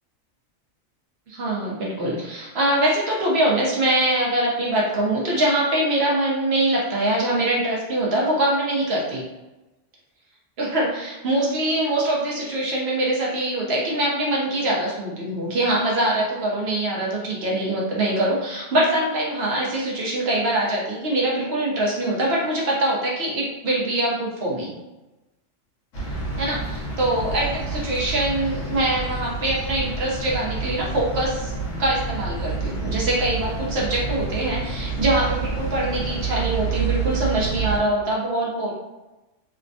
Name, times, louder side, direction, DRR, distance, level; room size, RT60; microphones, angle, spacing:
voice 1, 1.3-9.2 10.6-24.7 26.4-31.5 31.8-38.7, right 1 dB, 60° right, -4 dB, 0.8 m, -23 dB
sound 1, 25.9-37.8, right 4 dB, 75° left, 1.2 m, -28 dB
3.3 x 2.1 x 2.5 m, 1.0 s
omnidirectional pair, 1.3 m